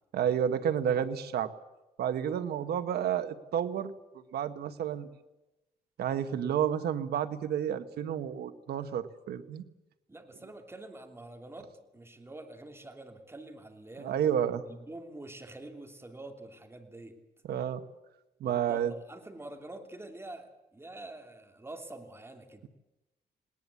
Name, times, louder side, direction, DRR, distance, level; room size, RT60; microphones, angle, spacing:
voice 1, 0.1-1.5 2.0-3.9 4.3-5.1 6.0-9.6 14.0-14.6 17.5-17.8 18.4-18.9, right 9 dB, 90° right, 10 dB, 1.2 m, -30 dB
voice 2, 10.1-14.2 14.7-17.2 18.4-22.7, right 2 dB, 15° right, 5 dB, 3.0 m, -46 dB
19.5 x 18.5 x 8.4 m, 1.0 s
cardioid pair, 105°, 16 cm